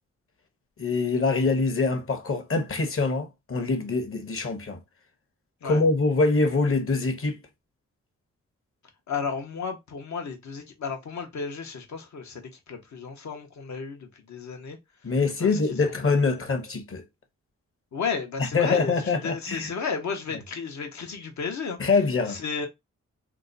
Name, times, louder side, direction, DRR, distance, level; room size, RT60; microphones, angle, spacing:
voice 1, 0.8-4.8 5.6-7.4 15.0-17.0 18.4-19.7 21.8-22.4, left 3 dB, 45° left, 1.0 m, -24 dB
voice 2, 9.1-14.8 15.4-16.4 17.9-21.8 22.3-22.7, left 5 dB, 70° left, 1.0 m, -33 dB
2.9 x 2.2 x 3.8 m
cardioid pair, 55°, 30 cm